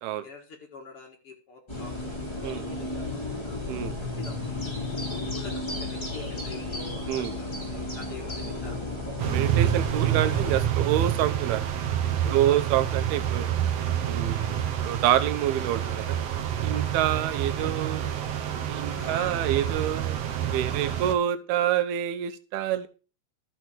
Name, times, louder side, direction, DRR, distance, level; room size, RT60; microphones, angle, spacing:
voice 1, 0.2-3.6 4.2-8.8 12.2-12.6 16.7-16.9 18.9-19.8 20.7-21.1, left 3 dB, 50° left, 2 dB, 2.1 m, -46 dB
sound 1, 1.7-10.6, left 2 dB, 10° left, 2.3 m, -33 dB
sound 2, 9.2-21.2, right 10 dB, 60° right, 1.7 m, -28 dB
voice 2, 9.3-11.7 12.3-13.5 14.0-16.2 16.6-18.1 18.7-20.2 20.5-22.9, right 11 dB, 90° right, 11 dB, 2.9 m, -27 dB
13.0 x 6.3 x 6.2 m, 0.35 s
omnidirectional pair, 4.3 m